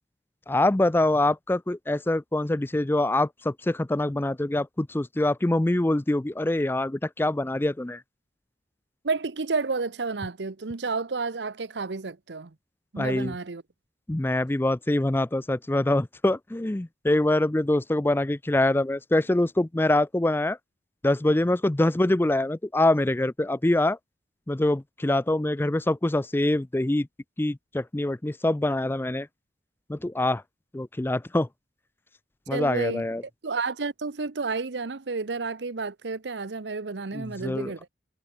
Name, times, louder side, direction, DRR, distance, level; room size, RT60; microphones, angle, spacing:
voice 1, 0.5-8.0 13.0-13.4 14.1-20.6 21.0-24.0 24.5-27.1 27.4-29.3 29.9-30.4 30.7-31.5 32.5-33.2 37.1-37.7, left 1 dB, 15° left, 0.4 m, -24 dB
voice 2, 9.0-12.5 12.9-13.6 32.5-33.0 33.4-37.9, right 4 dB, 80° right, 0.9 m, -31 dB
head